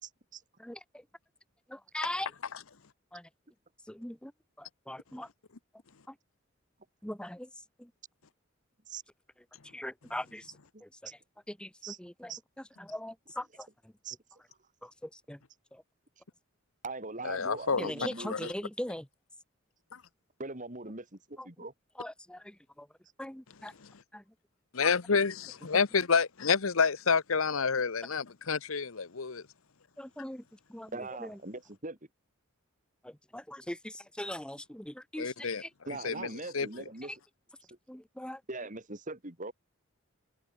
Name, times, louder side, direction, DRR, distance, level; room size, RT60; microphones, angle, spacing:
voice 1, 0.0-0.4 8.9-9.0 10.7-10.8 11.8-12.0 12.3-12.4 14.0-14.2 14.5-14.6 16.8-18.5 20.4-21.7 30.9-32.0 35.9-37.1 38.5-39.5, right 3 dB, 40° right, 3.6 m, -41 dB
voice 2, 0.6-1.0 1.7-2.3 3.1-3.3 3.9-4.3 4.6-5.3 6.1-6.2 7.0-7.5 7.8-7.9 9.7-10.5 10.8-11.1 11.5-12.3 12.8-13.9 14.8-15.4 15.7-15.8 17.8-19.1 21.4-21.5 22.0-22.9 23.2-23.7 24.1-24.2 30.0-31.4 33.0-35.7 37.1-37.2 37.9-38.4, left 1 dB, 5° left, 1.0 m, -41 dB
voice 3, 17.2-17.9 18.3-18.5 19.9-20.0 24.7-29.4 35.2-35.6 36.0-36.3 36.5-36.7, left 5 dB, 80° left, 1.0 m, -28 dB
head